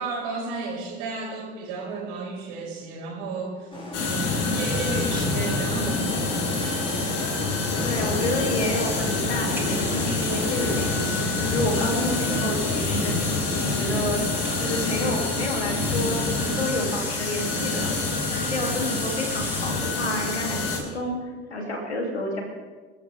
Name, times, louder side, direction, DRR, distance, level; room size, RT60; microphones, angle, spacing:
voice 1, 0.0-3.7 4.0-6.8, right 3 dB, 65° right, -1 dB, 5.4 m, -33 dB
sound 1, 3.7-11.1, left 1 dB, 15° left, 6.0 m, -36 dB
sound 2, 3.9-20.8, left 3 dB, 50° left, 3.8 m, -26 dB
voice 2, 7.8-11.2 11.5-13.3 13.7-14.2 14.6-17.9 18.3-21.2 21.5-22.4, left 1 dB, 90° left, 1 dB, 3.0 m, -30 dB
sound 3, 9.5-19.8, right 1 dB, 5° right, 2.2 m, -38 dB
24.0 x 13.5 x 3.6 m, 1.4 s
figure-of-eight pair, 65°, 32 cm